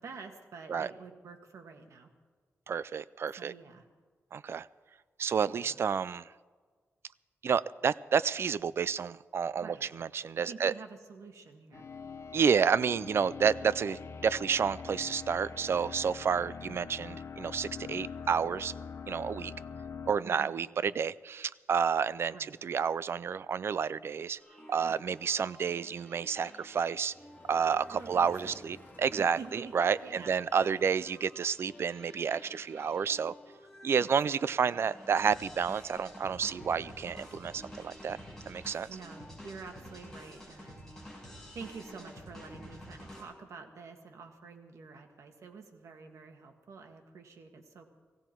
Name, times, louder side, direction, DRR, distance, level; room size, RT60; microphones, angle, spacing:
voice 1, 0.0-2.1 3.4-3.9 5.4-5.8 9.6-9.9 10.5-11.8 20.2-20.6 22.3-22.6 24.7-25.2 27.9-28.6 29.2-29.8 30.0-30.8 34.0-34.8 38.9-40.9 41.5-47.9, right 5 dB, 80° right, 4 dB, 1.7 m, -48 dB
voice 2, 2.7-3.5 4.3-4.7 5.2-6.3 7.4-10.7 12.3-18.7 19.1-19.5 20.1-24.4 24.7-27.1 27.5-33.3 33.8-38.2 38.5-38.9, right 6 dB, 55° right, 18 dB, 0.4 m, -30 dB
sound 1, 11.7-20.1, left 6 dB, 60° left, 0.7 m, -44 dB
sound 2, 24.4-43.2, equal, 10° left, 4.9 m, -51 dB
Motor vehicle (road), 26.7-39.3, left 1 dB, 40° left, 5.7 m, -59 dB
17.0 x 16.5 x 4.5 m, 1.5 s
wide cardioid pair, 155°, 5 cm